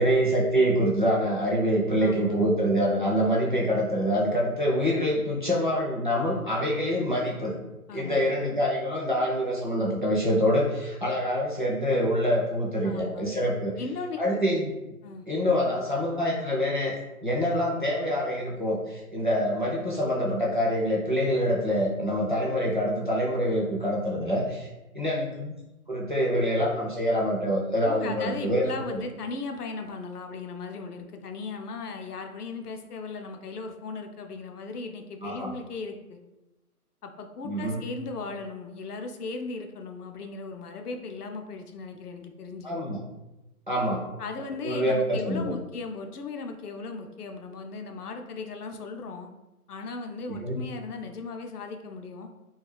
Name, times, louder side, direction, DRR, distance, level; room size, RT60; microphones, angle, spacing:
voice 1, 0.0-7.6 7.9-13.7 14.2-14.7 15.3-16.9 17.2-24.7 24.9-25.5 25.9-29.0 35.2-35.5 37.4-37.8 42.6-43.0 43.7-44.0 44.6-45.5 50.3-50.6, equal, 35° right, -4 dB, 0.4 m, -25 dB
voice 2, 2.0-2.4 7.9-8.3 12.8-13.2 13.8-14.2 15.0-15.3 27.9-36.2 37.0-42.7 44.2-49.3 49.7-52.3, left 4 dB, 85° left, 5 dB, 0.6 m, -37 dB
2.3 x 2.2 x 3.2 m, 1.0 s
hypercardioid pair, 165°, 45 cm